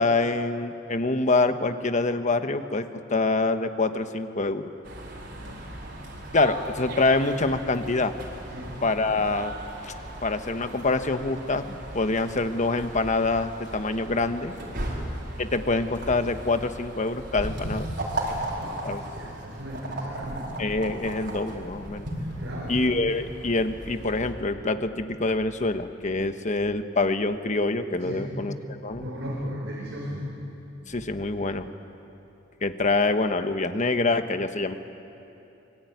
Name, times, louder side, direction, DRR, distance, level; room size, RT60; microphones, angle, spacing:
voice 1, 0.0-4.7 6.3-8.1 8.8-9.5 9.8-9.9 10.2-14.5 15.4-17.9 18.8-19.0 20.6-22.1 22.7-28.5 28.8-29.0 30.9-31.7 32.6-34.7, left 3 dB, 40° left, 8 dB, 1.2 m, -25 dB
sound 1, 4.8-24.3, right 1 dB, 60° right, 4.5 m, -37 dB
voice 2, 5.3-5.7 8.5-8.8 14.8-15.1 18.5-20.6 22.4-22.8 28.0-28.4 29.0-30.3, equal, 85° right, -4 dB, 4.9 m, -36 dB
25.0 x 22.5 x 9.5 m, 2.9 s
head